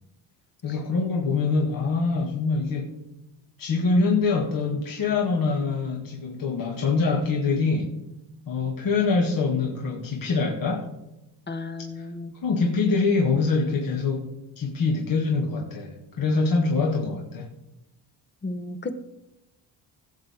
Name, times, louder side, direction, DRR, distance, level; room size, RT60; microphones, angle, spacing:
voice 1, 0.6-3.0 3.6-8.0 8.5-10.9 12.0-12.1 12.4-17.5, left 4 dB, 55° left, -1 dB, 1.9 m, -24 dB
voice 2, 11.5-12.3 18.4-19.0, left 2 dB, 25° left, 9 dB, 1.1 m, -33 dB
17.5 x 7.9 x 3.7 m, 0.92 s
cardioid pair, 110°, 41 cm